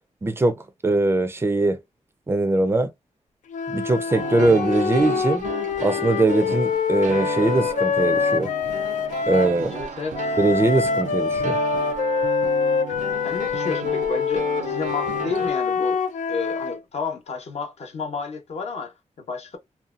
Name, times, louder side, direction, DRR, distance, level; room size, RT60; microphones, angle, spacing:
voice 1, 0.2-0.6 0.8-1.8 2.3-2.9 3.7-5.5 5.8-8.5 9.3-9.7 10.4-11.6, right 2 dB, 20° right, 0.4 m, -21 dB
sound 1, 3.5-9.6 10.1-16.8, left 6 dB, 85° left, 0.4 m, -25 dB
sound 2, 4.1-15.5, right 5 dB, 80° right, 0.4 m, -33 dB
voice 2, 9.7-10.3 13.2-16.0 16.3-19.6, left 4 dB, 60° left, 0.9 m, -31 dB
2.7 x 2.2 x 2.4 m
wide cardioid pair, 155°, 12 cm